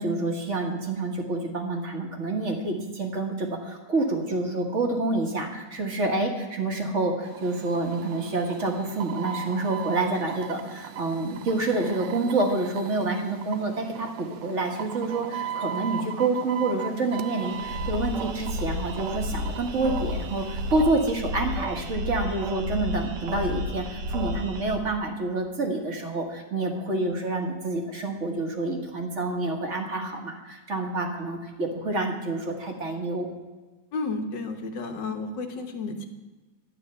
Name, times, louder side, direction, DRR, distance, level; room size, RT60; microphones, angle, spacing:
voice 1, 0.0-33.3, right 2 dB, 40° right, 2 dB, 1.8 m, -28 dB
sound 1, 7.2-20.8, right 9 dB, 90° right, 1.4 m, -38 dB
sound 2, 17.4-24.8, left 1 dB, 70° right, 1.6 m, -32 dB
voice 2, 33.9-36.1, left 3 dB, 75° left, 5 dB, 1.8 m, -32 dB
12.0 x 9.2 x 5.5 m, 1.2 s
omnidirectional pair, 2.0 m